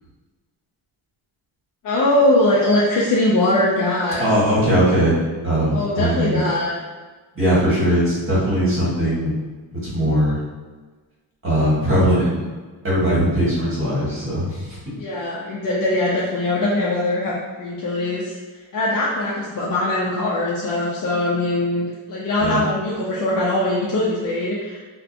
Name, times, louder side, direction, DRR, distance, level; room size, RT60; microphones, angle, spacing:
voice 1, 1.8-4.3 5.7-6.8 15.0-18.3 18.7-24.8, left 1 dB, 45° left, -6 dB, 0.5 m, -21 dB
voice 2, 4.2-6.4 7.3-9.3 9.7-10.4 11.4-12.4 12.8-14.6 22.4-22.6, equal, 25° right, -8 dB, 1.3 m, -19 dB
2.5 x 2.2 x 2.5 m, 1.3 s
cardioid pair, 95°, 48 cm